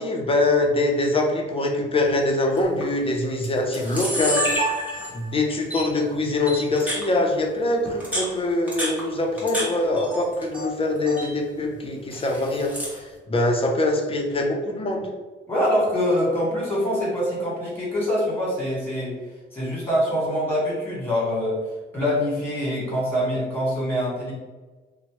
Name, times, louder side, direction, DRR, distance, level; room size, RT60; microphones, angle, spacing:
voice 1, 0.0-4.5 5.1-15.1, left 2 dB, 30° left, 2 dB, 0.5 m, -23 dB
Camera, 2.6-2.8 3.4-3.5 3.7-5.3 5.7-5.8 6.5-7.0 7.9-9.7 10.0-10.7 11.0-11.3 12.1-13.0, equal, 5° right, 1.1 m, -28 dB
voice 2, 15.5-19.1 19.5-21.6 21.9-24.3, equal, 10° left, -6 dB, 1.5 m, -24 dB
2.7 x 2.1 x 3.0 m, 1.3 s
cardioid pair, 90°, 20 cm